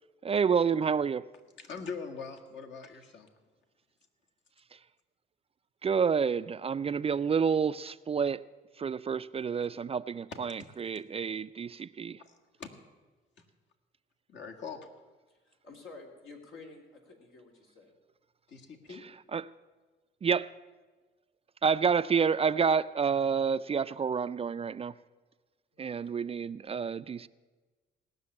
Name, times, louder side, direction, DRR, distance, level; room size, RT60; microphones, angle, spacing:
voice 1, 0.2-1.2 5.8-8.4 8.8-12.2 19.3-19.4 20.2-20.5 21.6-24.9 25.8-27.3, right 6 dB, 30° right, 14 dB, 0.3 m, -29 dB
voice 2, 1.6-3.3 10.3-10.7 12.2-12.7 14.3-14.9 18.5-19.0, left 5 dB, 65° left, 3 dB, 1.8 m, -42 dB
voice 3, 15.3-17.9 25.7-26.1, left 3 dB, 80° left, 1 dB, 3.1 m, -51 dB
17.5 x 6.7 x 9.7 m, 1.3 s
cardioid pair, 90°, 20 cm